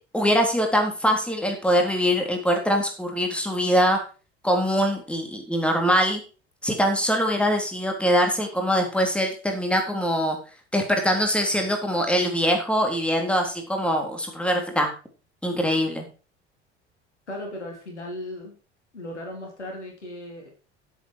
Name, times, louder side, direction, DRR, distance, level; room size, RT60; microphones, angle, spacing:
voice 1, 0.1-4.0 4.4-6.2 6.6-10.4 10.7-14.9 15.4-16.1, equal, 5° left, 3 dB, 3.5 m, -23 dB
voice 2, 17.3-18.5 18.9-20.5, left 1 dB, 85° left, 1 dB, 3.6 m, -36 dB
12.5 x 8.2 x 4.9 m, 0.35 s
figure-of-eight pair, 65°, 34 cm